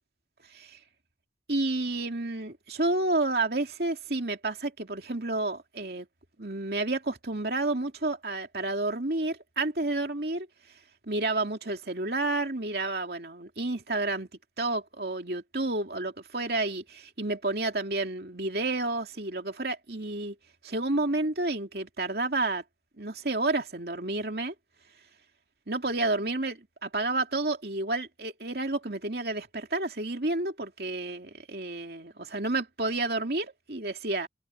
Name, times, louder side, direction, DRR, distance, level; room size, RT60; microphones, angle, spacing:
voice 1, 1.5-6.1 6.4-10.5 11.1-14.3 14.6-20.4 20.6-22.6 23.0-24.5 25.7-34.3, right 2 dB, 60° right, 2.8 m, -30 dB
head